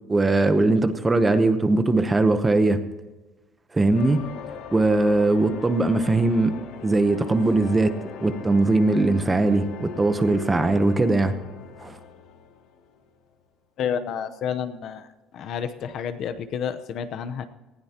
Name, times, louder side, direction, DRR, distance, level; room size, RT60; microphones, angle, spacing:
voice 1, 0.1-2.8 3.7-4.3 4.7-6.5 6.8-7.9 8.2-11.3 11.8-11.9, right 2 dB, 10° right, 9 dB, 0.8 m, -20 dB
sound 1, 3.9-13.2, left 6 dB, 70° left, 2.2 m, -40 dB
voice 2, 13.8-17.5, left 8 dB, 45° left, 10 dB, 0.8 m, -30 dB
19.5 x 15.5 x 2.9 m, 1.2 s
cardioid pair, 170°, 0 cm